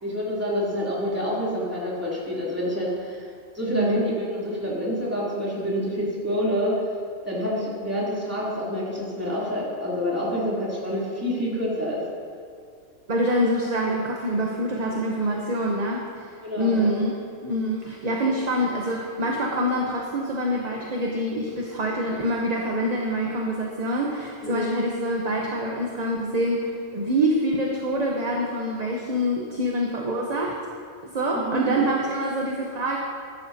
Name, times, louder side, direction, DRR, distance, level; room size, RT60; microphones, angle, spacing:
voice 1, 0.0-3.3 3.5-6.8 7.2-12.0 16.4-17.0 24.4-24.7 31.3-31.8, equal, 10° right, -8 dB, 3.1 m, -27 dB
voice 2, 3.7-4.1 13.1-16.2 16.6-30.6 31.0-33.0, equal, 35° right, -1 dB, 1.0 m, -25 dB
14.5 x 12.0 x 2.8 m, 2.3 s
omnidirectional pair, 1.3 m